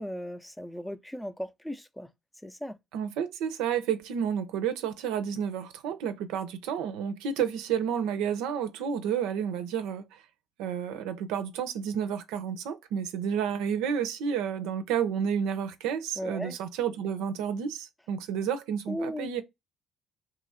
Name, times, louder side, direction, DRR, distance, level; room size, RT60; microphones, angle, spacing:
voice 1, 0.0-2.1 2.4-2.8 16.2-16.6 18.9-19.3, equal, 5° left, 0.5 m, -36 dB
voice 2, 2.9-10.2 10.6-19.4, right 8 dB, 85° right, 0.6 m, -31 dB
2.8 x 2.4 x 4.0 m
cardioid pair, 90°, 0 cm